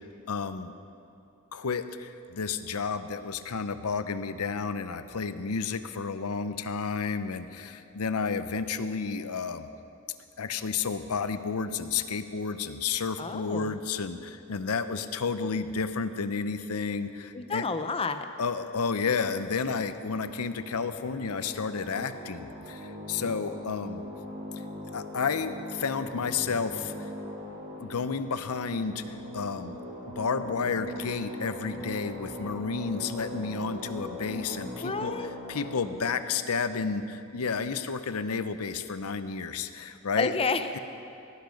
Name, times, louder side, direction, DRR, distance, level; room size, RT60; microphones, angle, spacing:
voice 1, 0.3-0.7 1.5-1.8 2.4-9.7 10.4-14.2 14.5-17.1 17.5-17.7 18.4-22.5 23.1-24.0 24.9-25.5 25.8-26.8 27.8-29.0 29.3-29.8 30.2-35.2 35.5-37.0 37.3-40.3 40.7-40.8, left 5 dB, 90° left, 11 dB, 0.7 m, -31 dB
voice 2, 13.2-13.8 17.3-18.3 34.8-35.3 40.2-40.8, left 4 dB, 25° left, 9 dB, 0.6 m, -30 dB
sound 1, 19.6-37.7, left 1 dB, 35° right, 2.2 m, -41 dB
18.0 x 10.5 x 5.2 m, 2.7 s
head